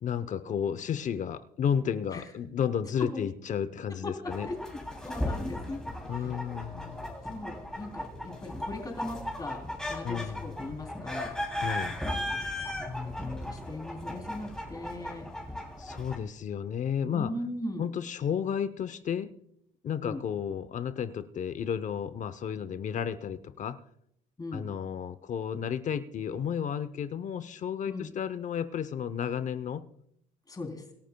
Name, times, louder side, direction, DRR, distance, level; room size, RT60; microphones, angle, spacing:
voice 1, 0.0-4.5 6.0-7.1 10.0-10.5 11.5-12.0 15.8-17.3 17.8-19.3 19.8-23.8 24.5-29.8, left 8 dB, 45° left, 14 dB, 0.7 m, -32 dB
voice 2, 4.0-4.6 5.0-5.8 6.1-6.3 7.3-9.6 9.9-11.3 12.8-15.3 17.0-17.9 20.0-20.2 24.4-24.7 27.9-28.1 30.5-30.8, left 2 dB, 20° left, 3 dB, 3.4 m, -38 dB
sound 1, 4.3-16.2, left 1 dB, 5° left, 3.0 m, -36 dB
25.5 x 12.5 x 2.3 m, 0.73 s
cardioid pair, 110°, 17 cm